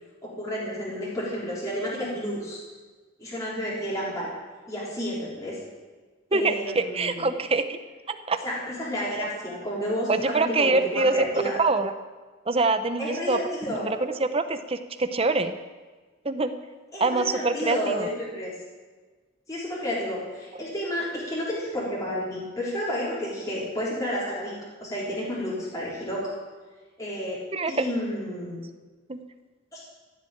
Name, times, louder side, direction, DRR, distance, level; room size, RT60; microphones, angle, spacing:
voice 1, 0.2-2.6 3.2-4.3 4.7-5.6 6.3-7.2 8.4-11.6 13.0-14.0 16.9-18.5 19.5-24.5 24.8-26.3 27.0-27.4 27.7-28.6 29.7-29.8, equal, 20° left, -8 dB, 4.1 m, -31 dB
voice 2, 6.3-7.8 8.1-8.4 10.1-11.2 11.6-11.9 12.5-13.4 13.7-15.6 16.2-16.5 17.0-18.1 27.5-27.8 29.1-29.2, right 3 dB, 30° right, 9 dB, 0.8 m, -25 dB
15.0 x 7.9 x 8.8 m, 1.3 s
head